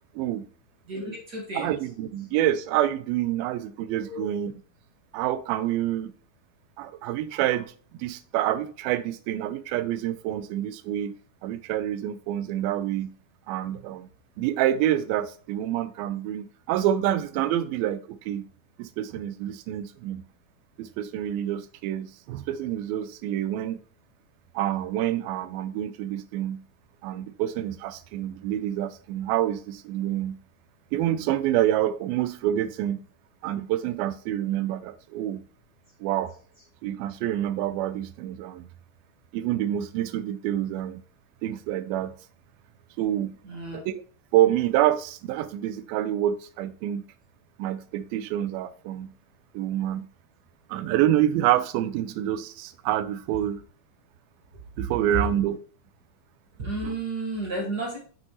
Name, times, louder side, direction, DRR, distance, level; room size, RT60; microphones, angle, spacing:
voice 1, 0.1-0.5 1.5-4.5 5.1-6.1 6.8-11.1 11.4-13.1 13.5-14.1 14.4-18.4 18.8-20.2 20.8-23.8 24.5-26.6 27.0-30.4 30.9-33.0 33.4-35.4 36.0-36.3 36.8-38.7 39.3-41.0 41.4-42.1 43.0-43.4 43.7-44.0 44.3-47.0 47.6-49.1 49.5-50.1 50.7-53.6 54.8-55.6 56.8-57.0, right 12 dB, 90° right, 2.4 m, -27 dB
voice 2, 0.9-1.7 4.1-4.3 43.5-43.8 56.6-58.0, right 2 dB, 55° right, 1.1 m, -32 dB
6.6 x 6.1 x 2.9 m
omnidirectional pair, 4.1 m